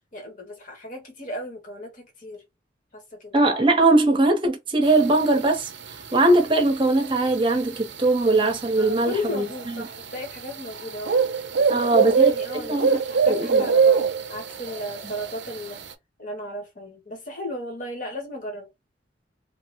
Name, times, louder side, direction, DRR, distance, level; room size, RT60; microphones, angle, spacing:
voice 1, 0.1-2.4 2.9-3.3 8.8-11.2 11.6-15.8 16.2-18.7, left 1 dB, 40° left, 1.0 m, -35 dB
voice 2, 3.3-9.9 11.7-12.3 12.7-12.9 13.3-13.6 15.0-15.1, right 2 dB, 25° right, 0.7 m, -21 dB
sound 1, 4.9-15.9, right 5 dB, 65° right, 0.5 m, -25 dB
3.1 x 2.1 x 2.9 m
head